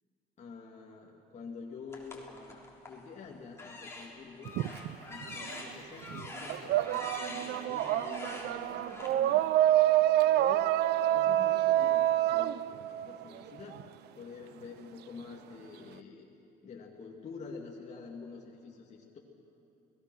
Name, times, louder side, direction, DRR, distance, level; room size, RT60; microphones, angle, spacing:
voice 1, 0.4-9.5 10.3-10.7 11.1-13.8 14.2-16.3 16.6-19.2, left 5 dB, 40° left, -2 dB, 2.3 m, -47 dB
sound 1, 1.9-3.0 3.5-9.1, left 2 dB, 15° left, 3.6 m, -45 dB
sound 2, 4.5-5.7 6.0-13.8, right 13 dB, 75° right, 0.5 m, -27 dB
30.0 x 18.5 x 6.3 m, 2.9 s
cardioid pair, 110°, 17 cm